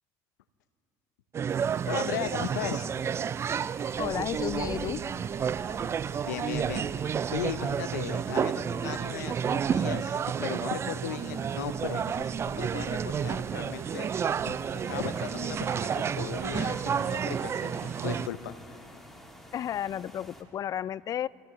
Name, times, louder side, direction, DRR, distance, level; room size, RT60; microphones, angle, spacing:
sound 1, 1.3-18.3, right 7 dB, 30° right, 0.3 m, -31 dB
sound 2, 1.5-20.4, equal, 5° left, 2.1 m, -48 dB
voice 1, 1.9-2.9 6.2-14.6 14.9-18.8, left 11 dB, 90° left, 12 dB, 0.8 m, -37 dB
voice 2, 4.0-5.0 19.5-21.3, left 10 dB, 40° left, 22 dB, 0.3 m, -32 dB
27.5 x 16.0 x 3.2 m, 2.2 s
supercardioid pair, 80°, 9 cm